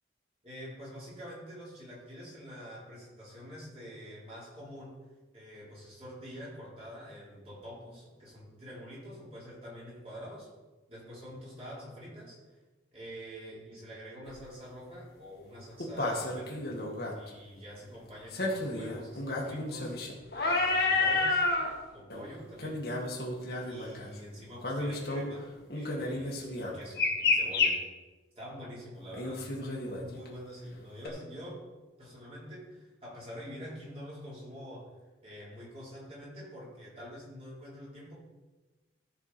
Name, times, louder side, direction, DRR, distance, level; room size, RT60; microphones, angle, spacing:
voice 1, 0.4-5.0 5.3-10.5 10.9-12.4 12.9-16.7 17.1-20.0 20.4-21.4 21.9-22.8 23.7-27.8 28.4-31.6 32.0-34.9 35.2-38.2, equal, 30° right, -6 dB, 4.0 m, -46 dB
sound 1, 14.3-14.4 15.8-17.1 18.3-21.7 22.1-22.3 22.6-24.1 24.6-25.3 25.7-27.7 29.1-30.3 31.0-31.1, left 3 dB, 55° left, 1.8 m, -30 dB
14.5 x 6.0 x 4.4 m, 1.2 s
head